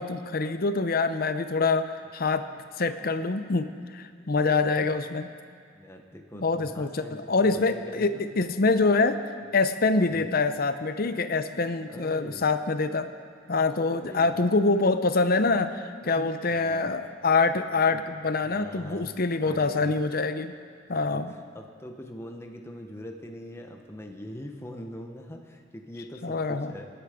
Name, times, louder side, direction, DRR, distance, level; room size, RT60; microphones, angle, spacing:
voice 1, 0.0-2.5 2.8-5.3 6.3-9.2 9.5-13.1 13.5-20.5 20.9-21.3 26.2-26.7, left 3 dB, 45° left, 10 dB, 0.7 m, -25 dB
voice 2, 5.7-8.3 10.1-10.3 11.9-12.4 14.0-14.5 16.0-16.9 17.6-17.7 17.9-18.0 18.4-20.0 20.9-26.8, left 1 dB, 15° left, 3 dB, 1.0 m, -43 dB
25.5 x 10.0 x 5.1 m, 2.1 s
head